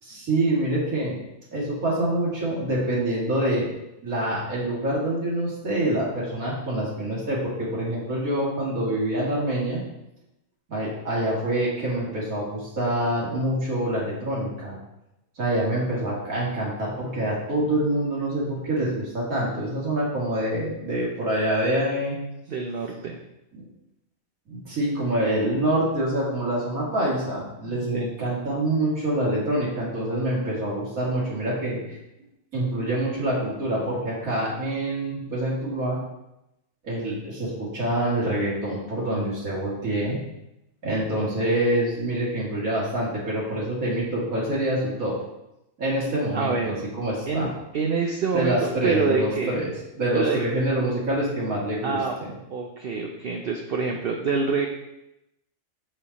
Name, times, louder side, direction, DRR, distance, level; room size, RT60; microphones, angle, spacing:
voice 1, 0.0-1.2 1.5-3.7 4.0-9.8 10.7-14.8 15.4-22.2 23.6-23.7 24.5-32.0 32.5-36.0 36.8-40.2 40.8-45.2 45.8-47.5 48.3-52.3, right 1 dB, 80° right, -5 dB, 2.7 m, -26 dB
voice 2, 22.5-23.2 27.6-28.1 46.3-46.8 47.3-49.5 50.1-50.4 51.8-52.2 52.5-54.7, right 4 dB, 50° right, 1 dB, 0.8 m, -26 dB
7.7 x 5.3 x 4.1 m, 0.89 s
omnidirectional pair, 1.4 m